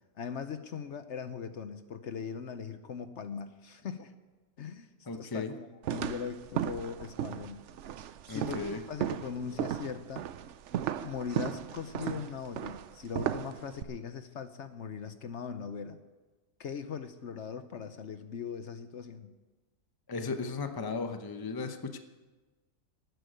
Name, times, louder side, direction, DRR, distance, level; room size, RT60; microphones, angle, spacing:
voice 1, 0.2-4.1 4.6-7.6 8.3-10.2 11.0-16.0 16.6-19.3, left 6 dB, 60° left, 10 dB, 1.0 m, -40 dB
voice 2, 5.1-5.5 8.3-8.8 20.1-22.0, left 4 dB, 20° left, 7 dB, 0.8 m, -36 dB
sound 1, 5.8-13.8, right 10 dB, 65° right, 0.9 m, -36 dB
13.0 x 9.2 x 9.5 m, 1.2 s
omnidirectional pair, 1.4 m